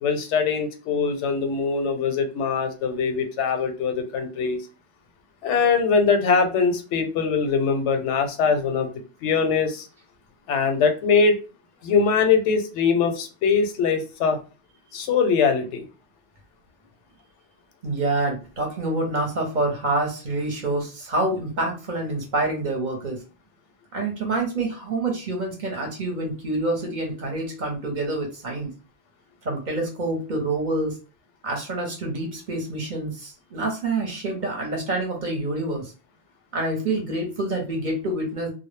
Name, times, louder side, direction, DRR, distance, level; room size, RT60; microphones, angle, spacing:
voice 1, 0.0-4.6 5.4-8.9 9.2-9.9 10.5-11.4 11.8-14.4 14.9-15.8, left 5 dB, 90° left, 7 dB, 0.9 m, -22 dB
voice 2, 17.8-23.2 23.9-28.7 29.4-31.0 31.4-35.9 36.5-38.5, right 2 dB, 50° right, 1 dB, 0.7 m, -27 dB
2.1 x 2.0 x 3.1 m, 0.34 s
omnidirectional pair, 1.2 m